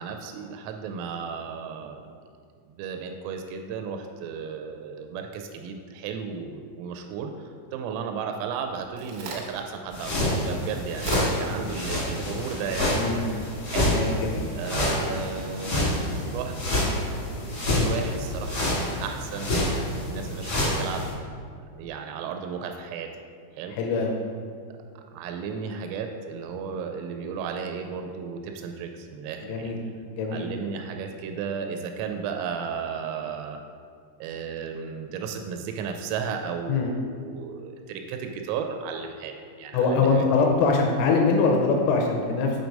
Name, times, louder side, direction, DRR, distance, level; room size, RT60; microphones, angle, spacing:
voice 1, 0.0-2.1 2.8-13.9 14.6-16.5 17.4-19.7 20.0-21.1 21.7-23.1 23.6-23.7 25.1-29.7 30.3-33.6 34.2-40.2, right 6 dB, 90° right, 4 dB, 3.2 m, -34 dB
Crack, 8.5-15.5, right 2 dB, 70° right, 2.2 m, -41 dB
sound 1, 9.9-21.1, left 1 dB, 75° left, 0.9 m, -27 dB
voice 2, 13.0-13.3 13.9-14.5 23.7-24.1 29.4-29.8 30.1-30.5 36.7-36.9 39.7-42.6, left 4 dB, 90° left, 1 dB, 3.3 m, -23 dB
7.8 x 4.6 x 5.2 m, 2.1 s
omnidirectional pair, 5.8 m